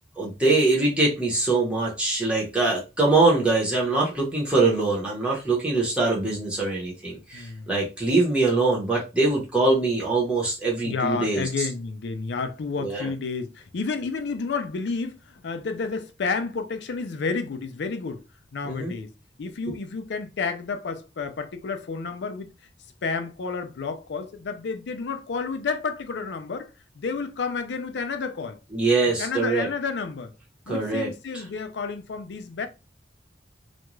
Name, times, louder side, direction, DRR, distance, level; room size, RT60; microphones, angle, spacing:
voice 1, 0.2-11.5 12.8-13.1 18.7-18.9 28.7-29.7 30.7-31.1, right 3 dB, 5° right, 0.8 m, -23 dB
voice 2, 7.3-7.7 10.8-18.2 18.5-19.1 19.4-22.5 23.0-26.7 27.0-28.6 29.2-30.3 30.7-32.7, left 4 dB, 75° left, 0.4 m, -30 dB
2.4 x 2.2 x 3.0 m
head